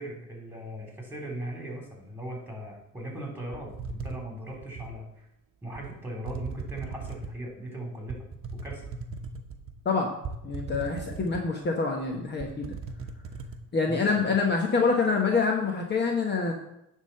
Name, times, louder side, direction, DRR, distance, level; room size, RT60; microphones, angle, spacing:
voice 1, 0.0-5.3 5.6-8.2 8.5-8.8 13.9-14.3, right 1 dB, 5° right, 0 dB, 3.1 m, -39 dB
sound 1, 3.5-5.0 5.7-5.9 6.2-7.4 8.1-9.7 10.2-11.7 12.0-12.1 12.4-13.6, right 4 dB, 45° right, 1.0 m, -38 dB
voice 2, 10.4-12.7 13.7-16.5, left 4 dB, 35° left, 1 dB, 1.2 m, -26 dB
9.8 x 3.7 x 5.7 m, 0.81 s
cardioid pair, 105°, 30 cm